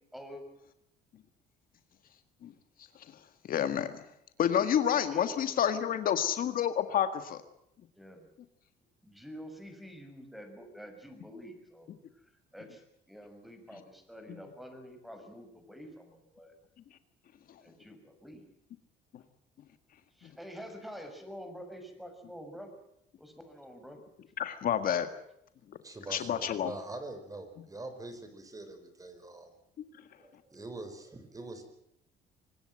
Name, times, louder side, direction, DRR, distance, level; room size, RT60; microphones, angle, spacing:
voice 1, 0.1-0.4 4.4-5.9 7.9-8.3 9.0-16.5 17.6-18.4 20.1-22.7 23.2-24.0, equal, ahead, 7 dB, 6.2 m, -48 dB
voice 2, 3.5-3.9 4.4-7.4 14.3-14.4 20.2-20.3 24.4-25.1 26.1-26.7, left 9 dB, 55° left, 10 dB, 1.8 m, -29 dB
voice 3, 25.8-29.5 30.2-31.7, right 2 dB, 20° right, 8 dB, 4.9 m, -44 dB
25.0 x 20.0 x 7.7 m, 0.76 s
cardioid pair, 110°, 17 cm